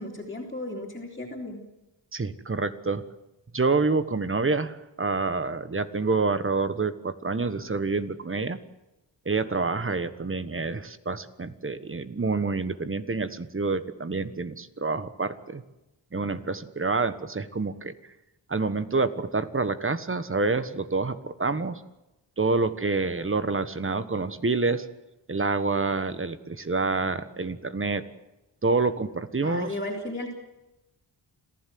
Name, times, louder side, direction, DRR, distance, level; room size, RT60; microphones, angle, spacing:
voice 1, 0.0-1.6 29.4-30.3, left 1 dB, 20° left, -4 dB, 3.7 m, -35 dB
voice 2, 2.1-3.0 3.5-8.6 9.2-15.6 16.1-17.9 18.5-21.8 22.4-24.9 25.3-28.0 28.6-29.7, right 3 dB, 30° right, 12 dB, 1.3 m, -27 dB
27.0 x 15.5 x 7.8 m, 0.96 s
wide cardioid pair, 100°, 43 cm